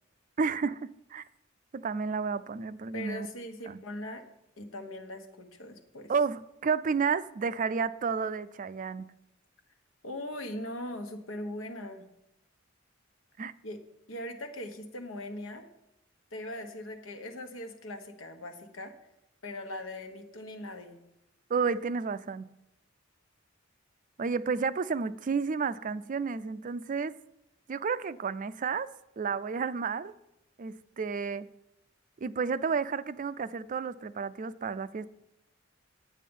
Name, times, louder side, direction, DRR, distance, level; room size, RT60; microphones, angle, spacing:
voice 1, 0.4-1.2 1.7-3.3 3.7-3.8 6.1-9.1 13.4-13.5 21.5-22.5 24.2-27.1 27.7-28.9 29.2-30.1 30.6-31.5 32.2-35.1, right 5 dB, 40° right, 0.4 m, -31 dB
voice 2, 2.9-4.2 4.6-6.1 10.0-12.1 13.6-13.8 14.1-15.6 16.3-18.9 19.4-21.0, left 1 dB, 80° left, 1.3 m, -40 dB
9.2 x 8.5 x 5.4 m
head